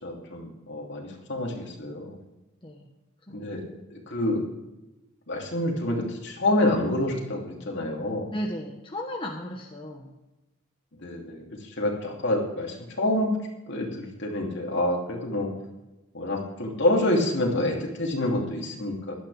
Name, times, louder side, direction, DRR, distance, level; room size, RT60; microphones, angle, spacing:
voice 1, 0.0-2.2 3.3-3.6 3.9-4.4 5.3-8.3 11.0-13.3 13.7-15.5 16.1-19.2, left 1 dB, 55° left, 0 dB, 3.0 m, -27 dB
voice 2, 3.3-3.6 8.3-10.1, equal, 25° left, 0 dB, 1.2 m, -35 dB
16.5 x 12.0 x 3.5 m, 1.0 s
head